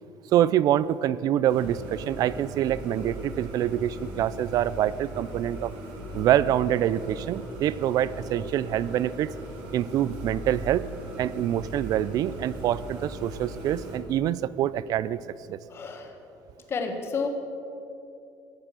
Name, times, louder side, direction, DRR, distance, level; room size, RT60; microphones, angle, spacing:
voice 1, 0.3-5.7 6.1-9.3 9.7-10.9 11.2-15.2 15.5-15.6, right 11 dB, 50° right, 18 dB, 0.3 m, -25 dB
sound 1, 1.5-14.0, right 1 dB, 80° right, 2.6 m, -39 dB
voice 2, 15.7-16.1 16.7-17.3, left 5 dB, 30° left, 4 dB, 1.5 m, -30 dB
15.5 x 6.9 x 7.5 m, 2.8 s
cardioid pair, 165°, 8 cm